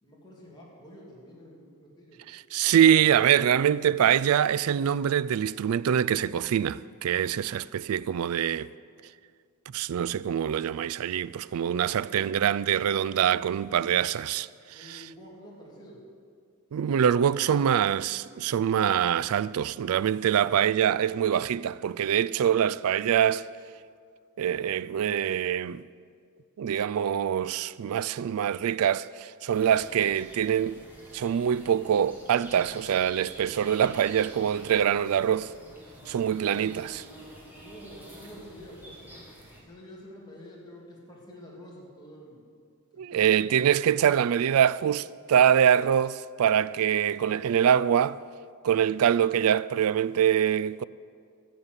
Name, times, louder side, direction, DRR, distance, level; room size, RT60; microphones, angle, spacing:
voice 1, 0.0-2.2 14.7-16.0 37.5-39.2 39.4-42.4 43.1-43.3, equal, 20° left, 2.9 m, -48 dB
voice 2, 2.3-8.7 9.7-15.1 16.7-23.4 24.4-25.8 26.6-30.8 31.1-35.5 36.1-37.0 43.0-48.2 48.6-50.8, right 9 dB, 70° right, 0.3 m, -24 dB
sound 1, 29.5-39.6, equal, 10° right, 2.3 m, -48 dB
13.5 x 7.3 x 8.1 m
head